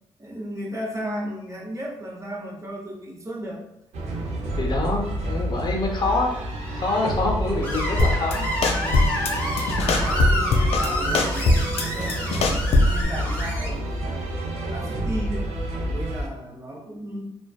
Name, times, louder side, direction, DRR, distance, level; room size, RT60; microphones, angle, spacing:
voice 1, 0.2-3.6 6.8-6.9 8.7-9.3 9.8-14.3 14.7-15.5 15.8-17.2, right 1 dB, 30° right, -1 dB, 0.8 m, -35 dB
sound 1, 3.9-16.3, right 1 dB, 75° right, 0.6 m, -29 dB
voice 2, 4.6-6.3 6.7-8.5 9.1-9.2 12.0-12.1, left 2 dB, 40° left, 0 dB, 0.8 m, -26 dB
Screech, 7.6-13.7, left 1 dB, 10° left, 1.2 m, -29 dB
sound 2, 8.0-8.3 8.6-9.3 9.6-10.9 11.1-13.0, left 2 dB, 65° left, 0.4 m, -20 dB
2.4 x 2.2 x 2.3 m, 0.81 s
supercardioid pair, 55°, 11 cm